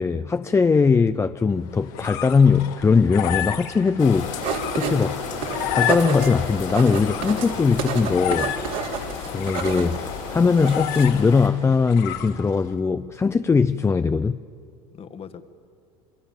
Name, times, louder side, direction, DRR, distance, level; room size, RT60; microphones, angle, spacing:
voice 1, 0.0-4.4 4.8-5.2 5.7-8.5 9.3-14.4, left 5 dB, 20° left, 0.5 m, -20 dB
sound 1, 1.6-12.7, left 11 dB, 65° left, 1.9 m, -32 dB
sound 2, 4.0-11.5, left 6 dB, 85° left, 5.9 m, -34 dB
sound 3, 4.1-11.1, right 7 dB, 70° right, 3.0 m, -31 dB
voice 2, 7.3-7.9 11.6-11.8 13.3-14.0 14.9-15.5, left 7 dB, 40° left, 1.7 m, -42 dB
27.5 x 23.0 x 7.3 m
hypercardioid pair, 90°, 16 cm